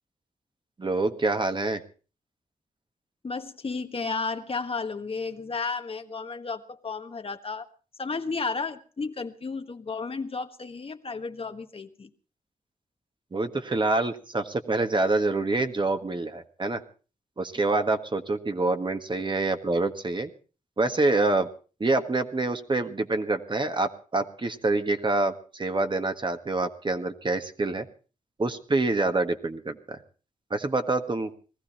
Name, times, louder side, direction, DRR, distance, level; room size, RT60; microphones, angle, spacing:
voice 1, 0.8-1.8 13.3-16.8 17.4-20.3 20.8-21.5 21.8-27.9 28.4-30.0 30.5-31.3, right 2 dB, 35° right, 7 dB, 1.6 m, -26 dB
voice 2, 3.2-7.7 8.0-12.1, left 4 dB, 45° left, 7 dB, 1.4 m, -33 dB
19.5 x 14.5 x 4.3 m, 0.37 s
cardioid pair, 60°, 13 cm